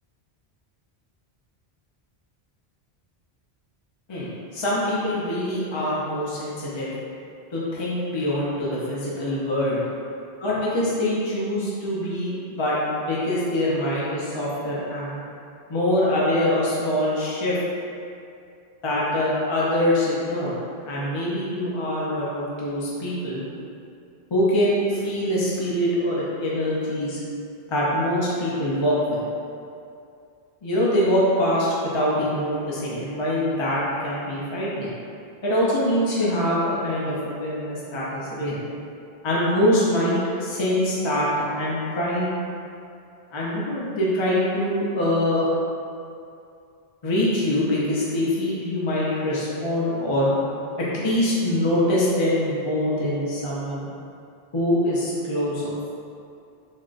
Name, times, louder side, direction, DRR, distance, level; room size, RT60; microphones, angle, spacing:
voice 1, 4.1-6.9 7.5-9.8 10.4-15.2 15.7-17.6 18.8-23.5 24.3-27.2 27.7-29.2 30.6-34.9 35.4-38.6 39.2-41.3 41.5-42.3 43.3-45.5 47.0-50.3 50.8-53.9 54.5-55.6, left 1 dB, 45° left, -7 dB, 0.4 m, -24 dB
3.5 x 2.5 x 2.4 m, 2.5 s
omnidirectional pair, 1.1 m